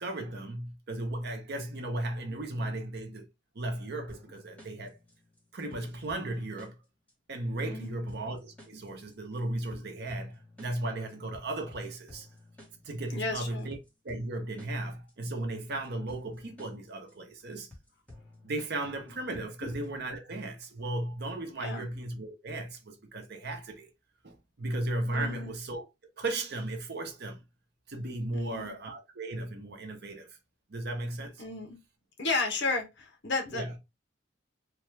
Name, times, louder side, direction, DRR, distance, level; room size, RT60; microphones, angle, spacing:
voice 1, 0.0-3.2 3.5-5.0 5.5-6.8 7.3-12.3 12.8-13.8 14.0-17.7 18.4-23.9 24.2-25.8 26.2-27.4 27.9-30.3 30.7-31.4 33.5-33.7, right 2 dB, 60° right, 0.8 m, -36 dB
sound 1, 4.1-20.1, left 1 dB, 5° left, 1.1 m, -54 dB
voice 2, 7.6-8.0 13.1-13.7 19.6-19.7 21.6-21.9 25.1-25.5 28.3-28.7 31.4-31.8 32.2-33.8, left 3 dB, 65° left, 0.9 m, -33 dB
3.2 x 2.3 x 3.1 m
head